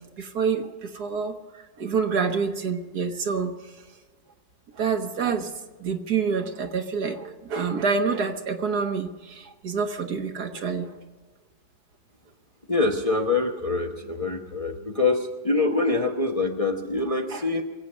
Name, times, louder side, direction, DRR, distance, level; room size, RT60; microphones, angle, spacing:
voice 1, 0.2-3.6 4.8-5.5 5.8-10.9 17.3-17.4, right 5 dB, 60° right, 5 dB, 1.8 m, -27 dB
voice 2, 12.7-17.6, left 3 dB, 25° left, 2 dB, 0.9 m, -25 dB
25.0 x 8.4 x 6.2 m, 1.4 s
omnidirectional pair, 1.9 m